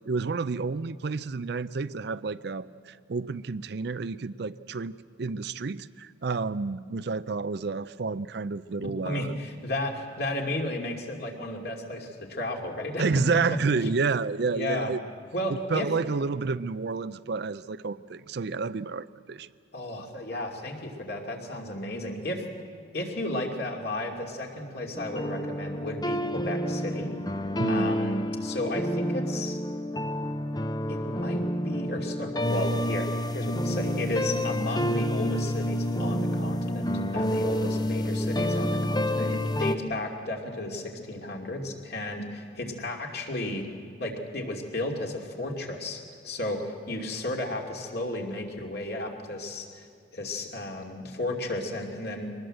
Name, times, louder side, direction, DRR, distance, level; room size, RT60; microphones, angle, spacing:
voice 1, 0.1-9.3 13.0-15.0 15.7-19.5 27.6-28.0, right 4 dB, 55° right, 15 dB, 0.5 m, -30 dB
voice 2, 9.0-13.0 13.8-13.9 14.5-14.9 15.3-15.9 19.7-22.5 22.9-27.1 27.7-29.6 30.9-43.7 44.0-49.9 50.1-52.3, left 1 dB, 55° left, 1 dB, 2.7 m, -33 dB
sound 1, 24.9-39.7, equal, 20° left, 0.7 m, -29 dB
23.5 x 19.5 x 7.7 m, 2.3 s
head